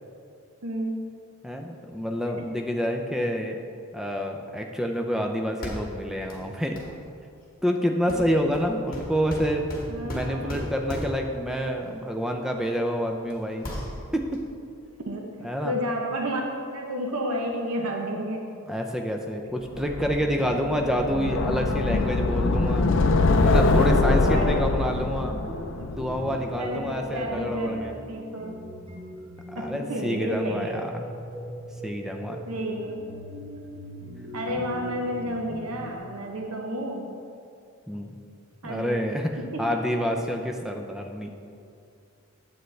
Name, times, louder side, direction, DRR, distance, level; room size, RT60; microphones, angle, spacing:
voice 1, 0.6-1.1 2.3-2.4 9.9-10.7 15.1-15.3 15.6-18.5 24.3-24.7 25.8-25.9 26.6-28.6 29.6-30.8 32.5-33.1 34.3-37.1 38.6-39.1 39.4-39.8, equal, 80° right, 1 dB, 0.8 m, -31 dB
voice 2, 1.4-3.6 3.9-6.8 7.6-9.6 10.0-13.8 14.1-14.4 15.4-15.7 18.7-22.9 23.4-25.4 25.9-27.9 29.5-30.9 31.8-32.4 37.9-38.2 38.6-39.3 39.6-41.3, equal, ahead, 2 dB, 0.4 m, -28 dB
sound 1, 5.6-6.0 6.3-6.4 6.8-7.0 8.1-11.4 12.5-12.6 13.0-13.3 13.6-14.4, equal, 40° left, 1.4 m, -35 dB
sound 2, 19.8-26.8, left 2 dB, 55° left, 0.5 m, -23 dB
sound 3, 21.6-36.0, equal, 30° right, 1.0 m, -41 dB
9.3 x 7.7 x 3.2 m, 2.5 s
head